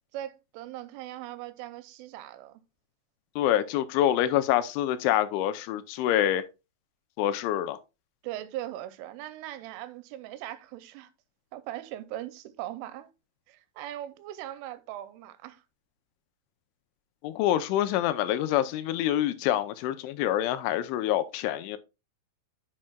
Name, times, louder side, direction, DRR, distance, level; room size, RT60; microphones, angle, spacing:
voice 1, 0.1-2.6 8.2-11.1 11.5-13.1 13.5-15.6, right 13 dB, 90° right, 3.2 m, -40 dB
voice 2, 3.4-6.4 7.2-7.8 17.2-21.8, left 12 dB, 85° left, 3.0 m, -26 dB
10.0 x 7.5 x 2.3 m
omnidirectional pair, 5.6 m